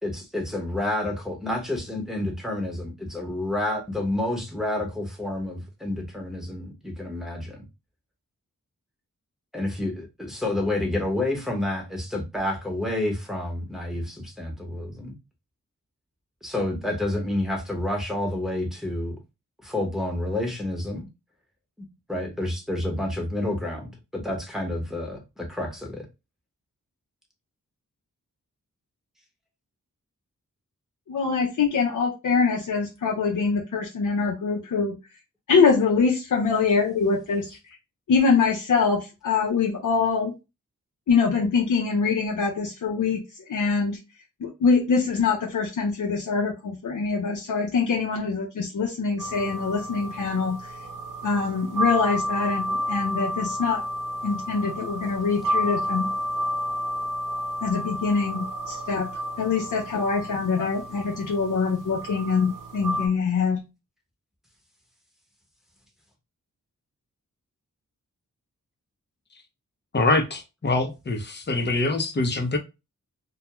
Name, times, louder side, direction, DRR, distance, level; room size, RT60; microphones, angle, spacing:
voice 1, 0.0-7.7 9.5-15.2 16.4-19.2 19.6-21.1 21.8-26.1, left 1 dB, ahead, 0.9 m, -29 dB
voice 2, 31.1-35.0 35.5-37.6 38.1-40.3 41.1-44.0 44.4-50.7 51.2-53.8 54.2-56.0 57.6-59.1 59.4-63.6, left 5 dB, 70° left, 0.6 m, -24 dB
sound 1, 49.2-63.1, equal, 85° right, 0.5 m, -31 dB
voice 3, 69.9-72.6, left 2 dB, 35° left, 0.6 m, -24 dB
2.2 x 2.2 x 2.9 m
wide cardioid pair, 75°, 32 cm